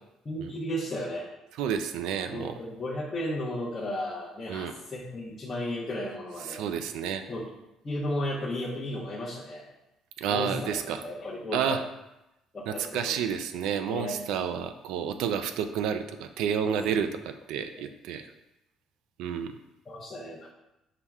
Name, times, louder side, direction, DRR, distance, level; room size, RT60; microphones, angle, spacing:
voice 1, 0.2-1.3 2.3-6.6 7.3-7.5 7.8-9.7 10.3-11.8 12.5-13.2 13.9-14.2 16.6-16.8 17.7-17.8 19.9-20.5, left 1 dB, 15° left, -10 dB, 0.6 m, -34 dB
voice 2, 1.6-2.5 4.5-4.7 6.4-7.2 10.2-11.0 11.5-11.8 12.7-18.3 19.2-19.5, right 8 dB, 75° right, 8 dB, 0.3 m, -30 dB
5.7 x 2.1 x 3.5 m, 0.93 s
cardioid pair, 180°, 0 cm